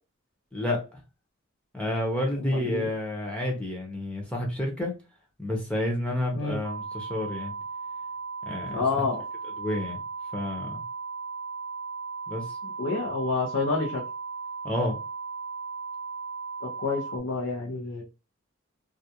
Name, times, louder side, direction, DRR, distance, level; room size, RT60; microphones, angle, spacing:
voice 1, 0.5-1.0 1.7-4.9 5.4-7.5 8.5-8.8 9.6-10.0 10.3-10.8 12.3-12.6 14.6-15.0, left 1 dB, 5° left, -1 dB, 0.6 m, -30 dB
voice 2, 2.4-2.9 6.3-6.6 8.7-9.2 12.8-14.0 16.6-18.0, left 4 dB, 85° left, -2 dB, 0.6 m, -28 dB
sound 1, 6.6-17.2, right 4 dB, 75° right, 0.5 m, -36 dB
2.3 x 2.1 x 2.8 m, 0.29 s
head